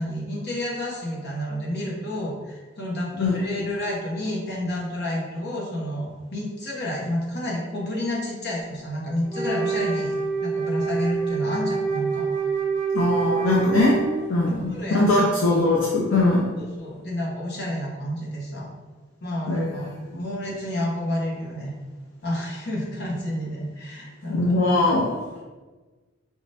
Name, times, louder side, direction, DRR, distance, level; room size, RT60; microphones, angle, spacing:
voice 1, 0.0-10.1 10.4-12.3 14.4-15.0 16.6-18.7 19.2-21.7 22.2-24.8, left 1 dB, 60° left, -3 dB, 1.2 m, -30 dB
Wind instrument woodwind instrument, 9.3-14.5, right 5 dB, 45° right, 1.0 m, -26 dB
voice 2, 12.9-14.0 14.3-16.5 19.5-19.6 24.3-25.1, left 2 dB, 75° left, -4 dB, 0.7 m, -21 dB
4.9 x 2.7 x 3.3 m, 1.3 s
head